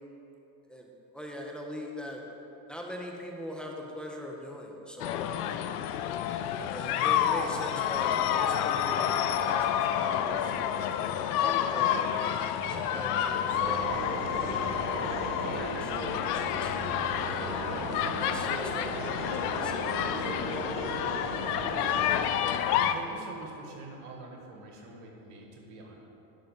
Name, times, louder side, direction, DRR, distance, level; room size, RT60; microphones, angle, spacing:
voice 1, 0.7-2.2 2.7-5.3 6.7-10.5 11.0-12.0 12.3-14.7 15.0-16.9 17.6-20.3 21.6-21.8, equal, ahead, -1 dB, 1.7 m, -42 dB
sound 1, 5.0-22.9, left 9 dB, 85° left, 0.7 m, -29 dB
sound 2, 13.5-22.4, right 4 dB, 70° right, 1.3 m, -38 dB
voice 2, 22.7-26.0, right 3 dB, 85° right, 0 dB, 1.9 m, -45 dB
11.0 x 6.2 x 7.4 m, 2.9 s
supercardioid pair, 85°, 44 cm